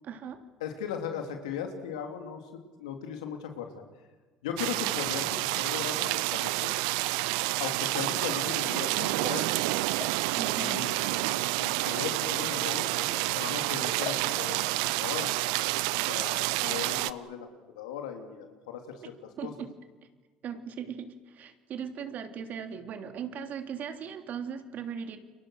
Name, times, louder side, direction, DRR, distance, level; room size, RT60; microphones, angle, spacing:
voice 1, 0.0-0.4 10.4-10.9 19.4-19.7 20.4-25.2, right 7 dB, 55° right, 7 dB, 3.1 m, -38 dB
voice 2, 0.6-3.8 4.4-6.7 7.6-9.5 10.6-12.9 13.3-15.3 16.1-17.5 17.7-19.1 19.4-19.5, left 8 dB, 90° left, 5 dB, 3.3 m, -38 dB
sound 1, 4.6-17.1, right 20 dB, 80° right, 0.7 m, -29 dB
sound 2, 8.3-15.0, left 9 dB, 70° left, 2.1 m, -46 dB
29.5 x 24.0 x 6.6 m, 1.4 s
hypercardioid pair, 75°, 3 cm